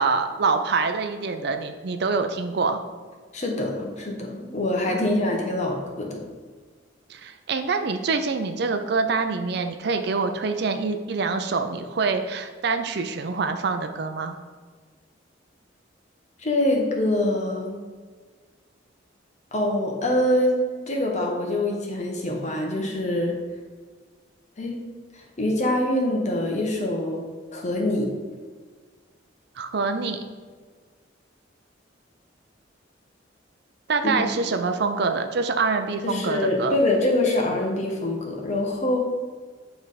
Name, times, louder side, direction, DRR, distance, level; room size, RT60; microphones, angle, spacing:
voice 1, 0.0-2.8 4.9-5.4 7.1-14.3 29.6-30.2 33.9-36.7, right 4 dB, 60° right, 7 dB, 0.5 m, -25 dB
voice 2, 3.3-6.2 16.4-17.8 19.5-23.4 24.6-24.9 25.1-27.2 27.5-28.1 34.0-34.3 36.0-39.0, left 1 dB, 40° left, 0 dB, 1.1 m, -25 dB
8.8 x 3.4 x 4.1 m, 1.5 s
head